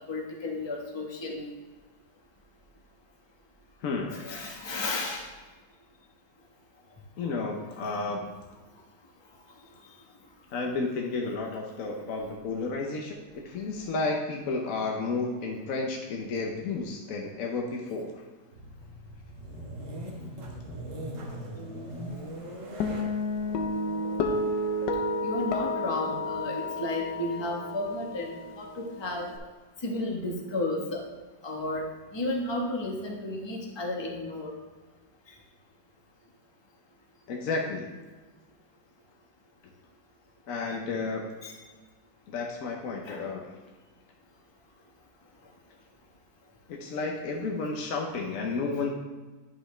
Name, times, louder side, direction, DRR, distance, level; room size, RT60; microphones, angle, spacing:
voice 1, 0.1-1.5 4.1-5.3 21.5-22.1 25.2-29.3 29.8-31.0 31.4-34.5 40.7-40.8 41.4-41.6 43.0-43.2, left 2 dB, 20° left, -1 dB, 1.0 m, -33 dB
voice 2, 3.8-4.2 7.2-8.3 10.5-18.2 37.3-37.9 40.5-41.3 42.3-43.5 46.7-48.9, left 3 dB, 60° left, 1 dB, 1.1 m, -32 dB
sound 1, 18.5-26.3, right 1 dB, 85° right, 2.0 m, -42 dB
Guitar, 22.8-29.4, left 2 dB, 80° left, 1.4 m, -31 dB
10.5 x 6.0 x 3.2 m, 1.3 s
omnidirectional pair, 1.8 m